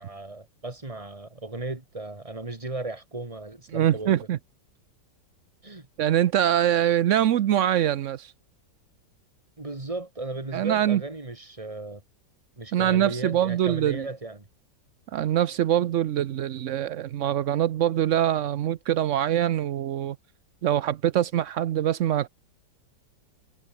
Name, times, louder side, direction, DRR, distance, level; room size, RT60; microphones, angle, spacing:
voice 1, 0.0-4.3 5.6-5.9 9.6-12.0 12.6-14.5, right 2 dB, 15° right, 2.4 m, -36 dB
voice 2, 3.7-4.4 6.0-8.3 10.5-11.0 12.7-14.1 15.1-20.2 20.6-22.3, right 11 dB, 70° right, 0.7 m, -24 dB
omnidirectional pair, 2.0 m